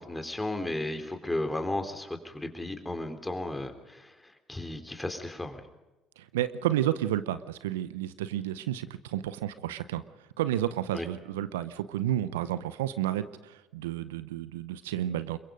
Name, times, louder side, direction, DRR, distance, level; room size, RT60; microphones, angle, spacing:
voice 1, 0.0-5.6 10.9-11.1, left 1 dB, 10° left, 7 dB, 3.6 m, -34 dB
voice 2, 6.2-10.0 10.4-15.4, right 12 dB, 80° right, 14 dB, 0.7 m, -31 dB
27.0 x 22.5 x 5.2 m, 1.1 s
hypercardioid pair, 55°, 0 cm